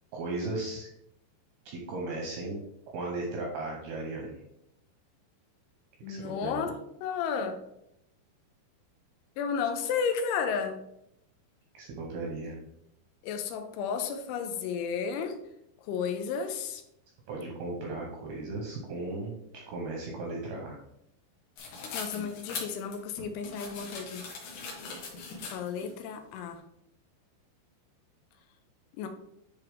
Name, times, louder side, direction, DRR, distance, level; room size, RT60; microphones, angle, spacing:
voice 1, 0.1-0.9 1.7-2.6 2.9-4.4 6.1-6.7 11.7-12.6 17.3-20.8, right 2 dB, 75° right, -1 dB, 2.4 m, -36 dB
voice 2, 6.0-6.7 7.0-7.6 9.4-10.8 13.2-15.4 15.8-16.8 21.9-24.3 25.5-26.6 29.0-29.1, left 6 dB, 80° left, 7 dB, 3.1 m, -32 dB
sound 1, 21.6-25.9, left 4 dB, 65° left, 3.0 m, -40 dB
10.5 x 3.5 x 3.5 m, 0.79 s
omnidirectional pair, 5.5 m